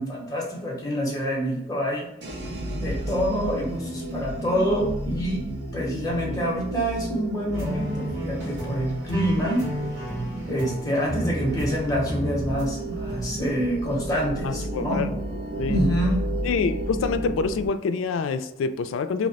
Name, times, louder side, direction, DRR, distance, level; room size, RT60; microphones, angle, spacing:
voice 1, 0.0-2.1 2.8-5.4 5.7-9.7 10.5-15.1 15.7-16.3, equal, 20° left, -3 dB, 0.8 m, -26 dB
sound 1, 2.2-17.7, right 1 dB, 55° right, 0.6 m, -32 dB
sound 2, 3.1-9.3 9.7-10.0, left 2 dB, 15° right, 0.7 m, -45 dB
sound 3, 7.5-12.6 13.1-13.5, equal, 80° right, 1.4 m, -31 dB
voice 2, 14.4-15.1 15.6-15.8 16.4-19.3, left 5 dB, 85° left, 11 dB, 0.3 m, -26 dB
2.8 x 2.1 x 4.0 m, 0.84 s
head